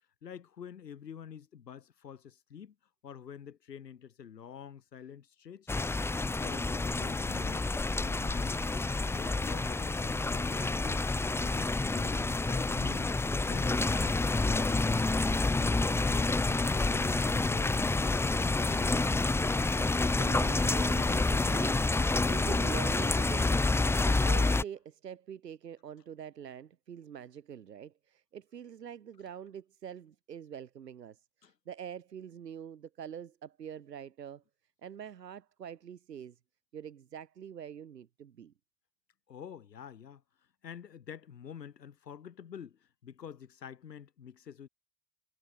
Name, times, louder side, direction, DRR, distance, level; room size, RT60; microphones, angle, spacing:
voice 1, 0.2-2.7 3.0-5.7 6.2-7.7 8.0-11.1 11.4-13.1 13.5-15.1 15.4-18.0 18.3-19.4 31.4-31.5 39.3-40.2 40.6-44.7, left 8 dB, 85° left, 2.4 m, -47 dB
sound 1, 5.7-24.6, left 3 dB, 5° left, 0.3 m, -28 dB
voice 2, 20.2-21.8 22.3-23.7 24.0-34.4 34.8-36.4 36.7-38.5, right 8 dB, 85° right, 2.4 m, -44 dB
figure-of-eight pair, 45°, 48 cm